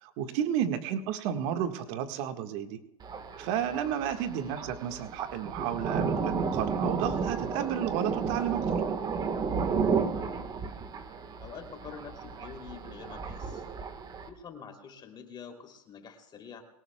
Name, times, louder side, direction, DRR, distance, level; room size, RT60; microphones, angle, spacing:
voice 1, 0.0-2.8 3.4-8.7, right 9 dB, 55° right, 7 dB, 1.6 m, -32 dB
Thunder, 3.0-14.3, right 5 dB, 20° right, 1.4 m, -32 dB
voice 2, 11.4-13.6 14.3-16.6, left 6 dB, 25° left, 3 dB, 3.0 m, -47 dB
22.5 x 18.5 x 2.3 m, 0.88 s
supercardioid pair, 135°, 19 cm